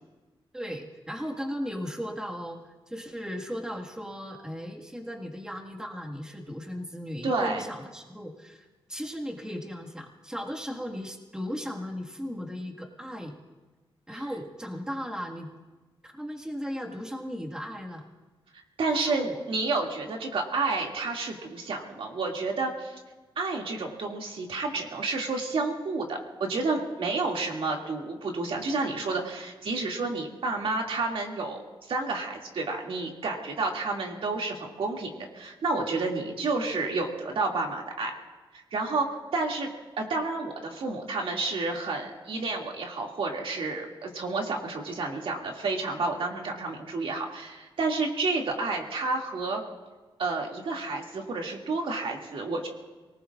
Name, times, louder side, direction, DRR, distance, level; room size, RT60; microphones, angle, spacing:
voice 1, 0.5-13.3 14.1-15.5 16.0-18.1 18.9-19.4, equal, 5° right, 0 dB, 1.7 m, -36 dB
voice 2, 7.2-7.6 14.1-14.2 18.8-23.0 23.4-38.1 38.5-39.1 39.3-39.7 40.0-49.6 50.2-52.7, right 3 dB, 75° right, 0 dB, 2.3 m, -30 dB
29.5 x 19.0 x 2.5 m, 1.2 s
wide cardioid pair, 105°, 9 cm